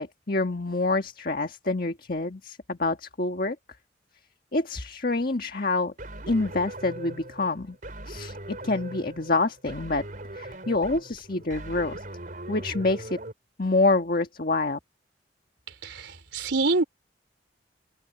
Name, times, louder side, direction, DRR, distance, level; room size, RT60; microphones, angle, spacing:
voice 1, 0.0-3.6 4.5-5.9 6.3-7.8 8.1-10.1 10.3-12.0 12.5-13.2 13.6-14.8, left 2 dB, 50° left, 1.6 m, -27 dB
sound 1, 6.0-13.3, right 1 dB, 45° right, 4.5 m, -40 dB
voice 2, 15.8-16.8, right 3 dB, 80° right, 3.3 m, -26 dB
open air
head